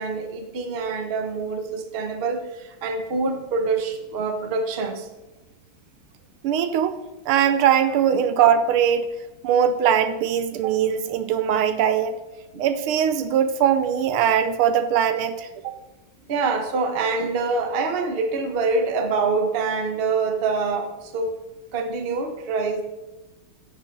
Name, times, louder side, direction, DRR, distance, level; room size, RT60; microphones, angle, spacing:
voice 1, 0.0-5.1 8.1-8.3 10.5-10.6 12.5-12.6 16.3-21.3 21.7-22.8, right 4 dB, 40° right, 6 dB, 0.8 m, -25 dB
voice 2, 6.4-7.0 7.3-9.1 9.4-12.2 12.6-15.7, right 9 dB, 85° right, 11 dB, 1.6 m, -21 dB
9.8 x 8.5 x 4.0 m, 1.1 s
omnidirectional pair, 2.3 m